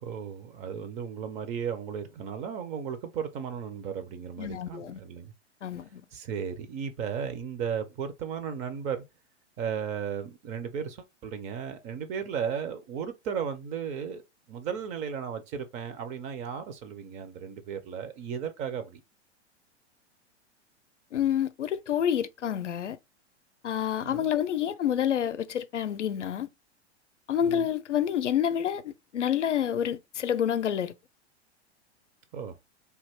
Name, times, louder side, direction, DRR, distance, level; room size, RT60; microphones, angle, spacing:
voice 1, 0.0-5.3 6.1-9.0 9.6-14.2 14.5-19.0 24.0-24.3 27.4-27.7 32.3-32.5, right 7 dB, 20° right, 0.4 m, -35 dB
voice 2, 4.4-5.0 5.6-6.0 21.1-23.0 23.6-26.5 27.3-31.0, left 9 dB, 80° left, 0.5 m, -28 dB
3.3 x 2.4 x 3.3 m
figure-of-eight pair, 100°, 35 cm